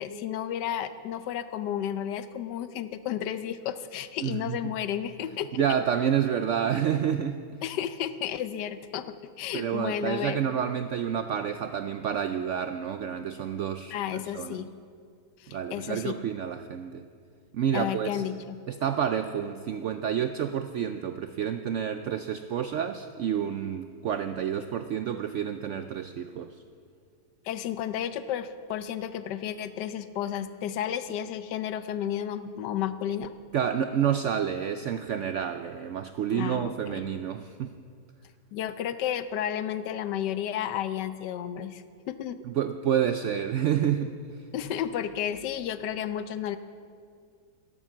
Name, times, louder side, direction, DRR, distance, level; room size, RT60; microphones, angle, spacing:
voice 1, 0.0-5.6 7.6-10.4 13.9-14.7 15.4-16.2 17.7-18.6 27.4-33.3 36.3-37.1 38.5-42.4 44.5-46.6, left 10 dB, 90° left, 12 dB, 1.3 m, -32 dB
voice 2, 4.2-4.6 5.5-7.6 9.5-14.6 15.5-17.0 17.5-18.2 18.7-26.5 33.5-37.7 42.5-44.1, right 9 dB, 80° right, 9 dB, 0.6 m, -29 dB
12.0 x 11.0 x 7.2 m, 2.2 s
omnidirectional pair, 1.8 m